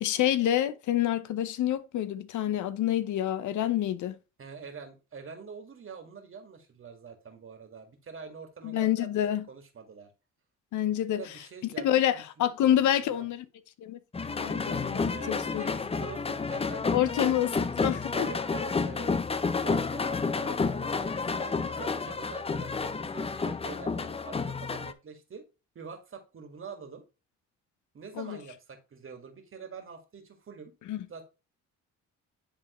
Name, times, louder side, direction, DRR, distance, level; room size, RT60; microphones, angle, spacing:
voice 1, 0.0-4.1 8.6-9.4 10.7-11.2 11.8-13.5 13.8-14.0 14.3-15.6 16.9-17.5 17.8-18.1 28.2-28.4 30.9-31.1, left 11 dB, 75° left, 0.7 m, -27 dB
voice 2, 4.4-9.1 9.5-10.1 11.1-13.3 15.1-19.1 19.6-25.4 25.8-27.0 27.9-30.7 31.1-31.2, right 5 dB, 45° right, 2.0 m, -45 dB
sound 1, 14.1-24.9, left 4 dB, 20° left, 0.6 m, -30 dB
10.5 x 3.6 x 3.1 m
cardioid pair, 90°, 30 cm